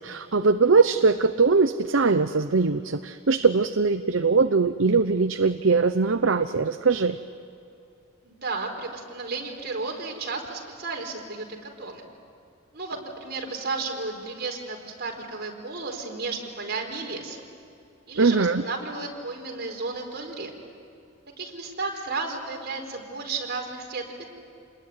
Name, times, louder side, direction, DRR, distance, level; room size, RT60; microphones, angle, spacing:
voice 1, 0.0-7.2 18.2-18.6, right 4 dB, 70° right, 9 dB, 0.8 m, -21 dB
voice 2, 8.2-11.5 11.8-12.0 12.7-17.4 18.1-20.5 21.4-24.3, right 3 dB, 55° right, 1 dB, 4.6 m, -33 dB
28.5 x 20.5 x 9.8 m, 2.6 s
head